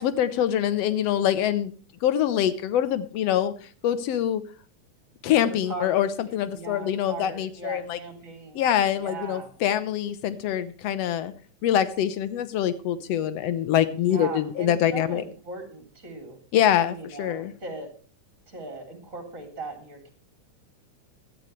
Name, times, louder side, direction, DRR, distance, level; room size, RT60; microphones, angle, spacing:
voice 1, 0.0-1.7 2.0-3.5 3.8-4.4 5.2-8.0 8.5-11.3 11.6-15.2 16.5-17.5, left 10 dB, 65° left, 13 dB, 1.8 m, -24 dB
voice 2, 5.7-6.0 6.5-8.7 9.0-9.5 14.0-16.4 16.9-17.9 18.5-20.1, right 3 dB, 25° right, 3 dB, 3.7 m, -38 dB
15.5 x 12.0 x 3.3 m, 0.39 s
omnidirectional pair, 3.5 m